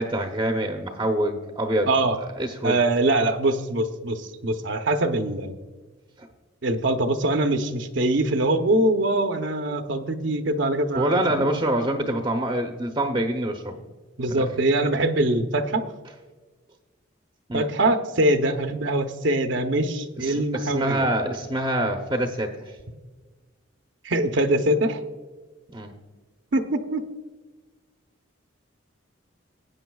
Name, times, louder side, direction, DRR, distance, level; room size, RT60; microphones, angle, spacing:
voice 1, 0.0-1.9 2.2-2.8 6.2-6.3 10.9-13.7 14.3-14.5 17.5-17.7 20.2-22.7 25.7-25.9, right 1 dB, 25° right, 3 dB, 0.7 m, -26 dB
voice 2, 1.9-2.2 2.6-5.5 6.6-11.2 14.2-15.9 17.5-21.1 24.0-25.0 26.5-27.1, right 1 dB, 65° right, 6 dB, 0.8 m, -23 dB
19.0 x 8.8 x 2.3 m, 1.3 s
head